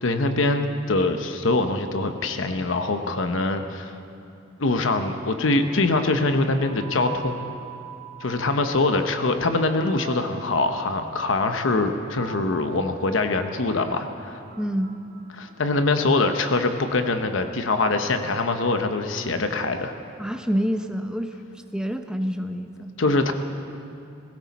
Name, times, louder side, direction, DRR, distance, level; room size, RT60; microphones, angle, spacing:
voice 1, 0.0-3.9 4.6-7.5 8.2-14.4 15.4-19.9 23.0-23.3, left 2 dB, 70° left, 7 dB, 0.9 m, -23 dB
sound 1, 5.1-15.9, right 6 dB, 50° right, 3.3 m, -43 dB
voice 2, 14.6-14.9 20.2-21.4 21.7-22.9, equal, 5° right, 6 dB, 0.6 m, -27 dB
17.5 x 16.0 x 4.2 m, 2.6 s
head